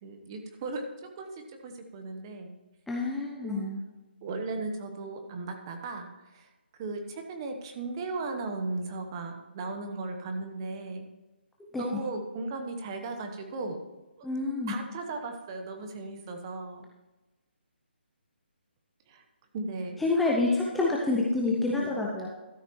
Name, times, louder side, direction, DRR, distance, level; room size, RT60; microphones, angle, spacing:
voice 1, 0.0-2.5 3.4-3.7 4.2-6.5 6.8-11.1 11.8-13.8 14.7-16.9 19.1-19.2 19.5-20.0, right 3 dB, 25° right, 5 dB, 1.0 m, -36 dB
voice 2, 2.9-3.8 11.7-11.8 14.2-14.7 20.0-22.3, left 3 dB, ahead, -3 dB, 0.6 m, -27 dB
13.0 x 5.7 x 4.6 m, 1.1 s
hypercardioid pair, 165°, 6 cm